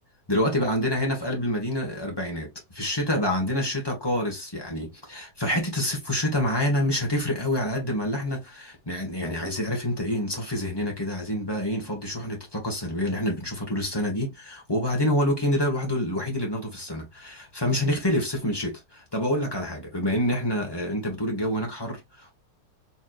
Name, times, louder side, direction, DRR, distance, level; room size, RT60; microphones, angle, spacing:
voice 1, 0.3-22.3, left 1 dB, 15° left, 1.5 m, -27 dB
4.3 x 3.5 x 2.4 m
omnidirectional pair, 1.7 m